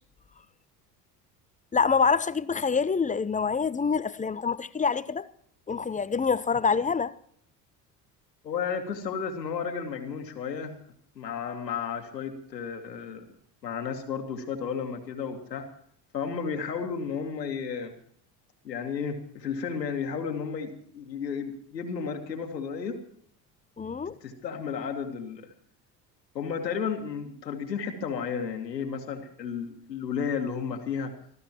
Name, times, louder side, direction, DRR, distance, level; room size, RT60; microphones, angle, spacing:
voice 1, 1.7-5.3 5.7-7.1 23.8-24.2, left 5 dB, 15° left, 0.8 m, -26 dB
voice 2, 8.4-10.8 11.2-13.3 13.6-15.7 16.1-17.9 18.6-23.0 24.2-25.5 26.3-31.1, left 6 dB, 85° left, 2.1 m, -33 dB
24.5 x 15.0 x 3.0 m
figure-of-eight pair, 60°, 49 cm